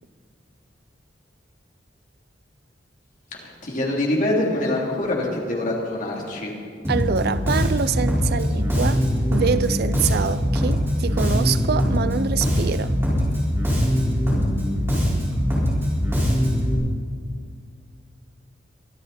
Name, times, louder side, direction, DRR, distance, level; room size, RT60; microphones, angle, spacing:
voice 1, 3.3-6.5, left 1 dB, 45° left, 3.2 m, -25 dB
Bass guitar, 6.8-16.7, equal, 15° right, 4.9 m, -22 dB
voice 2, 6.9-9.0 9.3-12.9, right 6 dB, 60° right, 0.5 m, -25 dB
23.5 x 13.0 x 4.3 m
head